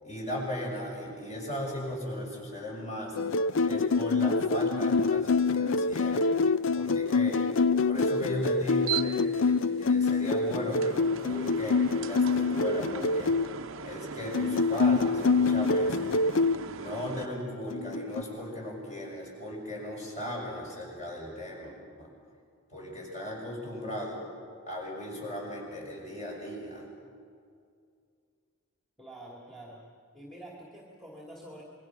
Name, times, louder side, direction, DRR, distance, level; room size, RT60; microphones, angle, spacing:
voice 1, 0.0-3.2 3.6-6.3 6.7-7.4 7.8-9.5 9.8-13.3 13.8-16.1 16.7-22.1 22.7-24.2 24.7-26.9, left 1 dB, 30° left, -2 dB, 6.4 m, -37 dB
sound 1, 3.2-13.5 14.3-16.6 17.7-18.2, left 4 dB, 55° left, 0.5 m, -26 dB
voice 2, 6.8-7.1 29.0-29.9 30.1-31.6, right 1 dB, ahead, -2 dB, 2.4 m, -47 dB
sound 2, 8.2-17.3, right 6 dB, 65° right, 0.8 m, -39 dB
27.5 x 22.5 x 6.0 m, 2.3 s
head